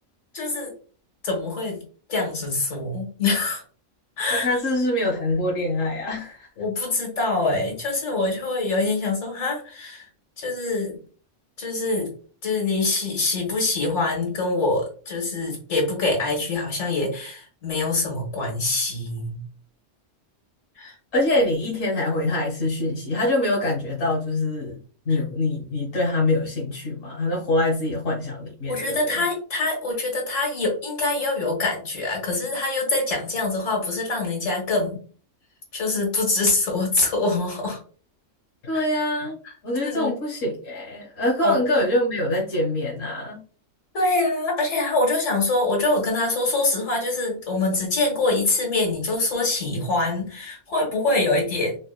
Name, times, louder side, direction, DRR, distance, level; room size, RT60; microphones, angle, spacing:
voice 1, 0.3-0.7 1.2-1.8 2.1-3.6 4.2-4.5 6.6-10.0 10.4-11.0 11.6-12.1 12.4-19.4 20.8-20.9 28.7-35.0 35.7-37.8 38.7-38.8 39.8-40.1 41.4-41.6 43.9-51.8, left 2 dB, 75° left, -1 dB, 2.0 m, -24 dB
voice 2, 4.3-6.5 21.1-24.8 25.0-29.2 38.6-39.4 39.6-43.4, left 1 dB, 90° left, -4 dB, 1.6 m, -24 dB
5.7 x 2.5 x 2.2 m, 0.40 s
omnidirectional pair, 1.3 m